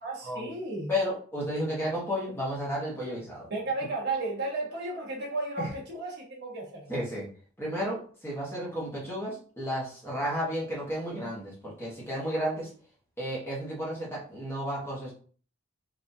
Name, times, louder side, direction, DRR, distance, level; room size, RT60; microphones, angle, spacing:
voice 1, 0.0-0.9 3.5-7.0, right 2 dB, 50° right, -3 dB, 1.2 m, -34 dB
voice 2, 0.9-3.5 5.6-5.7 6.9-7.3 7.6-12.7 13.2-15.1, equal, 10° left, -5 dB, 1.2 m, -32 dB
3.9 x 2.7 x 2.7 m, 0.44 s
head